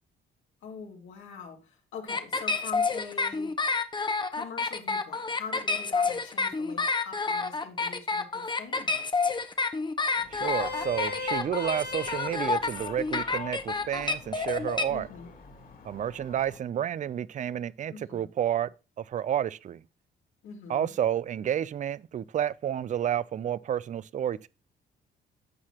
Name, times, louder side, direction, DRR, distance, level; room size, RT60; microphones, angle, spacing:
voice 1, 0.6-3.6 4.3-9.1 14.9-15.3 17.9-18.3 20.4-20.9, left 5 dB, 85° left, 2.3 m, -43 dB
sound 1, 2.1-14.8, left 4 dB, 25° left, 0.9 m, -29 dB
Vehicle horn car horn honking, 10.2-16.6, left 3 dB, 50° left, 2.3 m, -40 dB
voice 2, 10.3-15.1 15.8-18.7 19.0-19.8 20.7-24.5, right 10 dB, 40° right, 0.4 m, -30 dB
14.5 x 4.8 x 2.9 m
cardioid pair, 90°, 20 cm